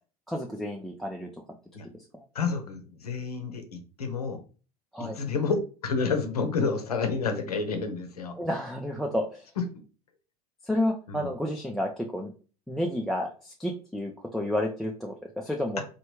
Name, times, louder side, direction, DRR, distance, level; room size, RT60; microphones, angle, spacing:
voice 1, 0.3-1.3 4.9-5.2 8.4-9.4 10.7-12.3 12.7-15.8, left 1 dB, ahead, 1 dB, 0.3 m, -30 dB
voice 2, 2.3-4.4 5.0-8.4 9.6-9.7 11.1-11.3, left 4 dB, 80° left, 6 dB, 0.6 m, -29 dB
3.1 x 2.2 x 3.1 m, 0.36 s
figure-of-eight pair, 75°, 19 cm